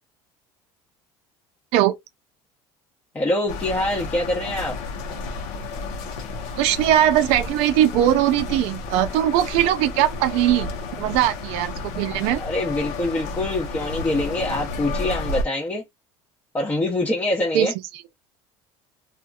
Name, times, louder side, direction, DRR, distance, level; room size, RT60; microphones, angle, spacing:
voice 1, 3.1-4.8 12.3-15.8 16.5-17.7, left 1 dB, 15° left, 0.7 m, -25 dB
sound 1, 3.5-15.4, left 3 dB, 75° left, 0.9 m, -32 dB
voice 2, 6.5-10.7 11.0-12.4 17.5-17.7, right 12 dB, 70° right, 0.4 m, -20 dB
2.8 x 2.4 x 2.3 m
cardioid pair, 140°, 11 cm